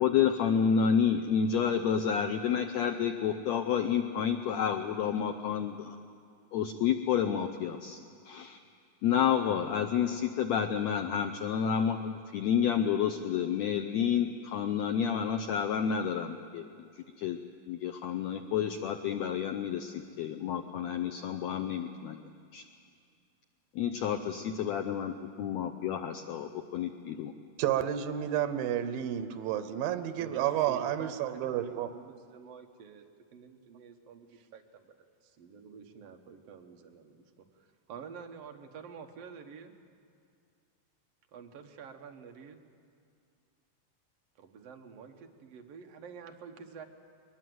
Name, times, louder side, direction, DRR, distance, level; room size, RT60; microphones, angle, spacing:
voice 1, 0.0-6.0 6.5-8.0 8.3-8.6 9.0-16.7 17.0-17.4 17.7-22.2 22.5-22.6 23.7-27.3, left 8 dB, 90° left, 6 dB, 1.5 m, -30 dB
voice 2, 27.6-31.9, right 11 dB, 90° right, 10 dB, 2.6 m, -31 dB
voice 3, 30.2-33.0 33.3-35.0 35.2-39.7 41.3-42.7 44.4-46.8, right 6 dB, 60° right, 4 dB, 1.9 m, -48 dB
22.0 x 20.5 x 7.8 m, 2.3 s
omnidirectional pair, 4.0 m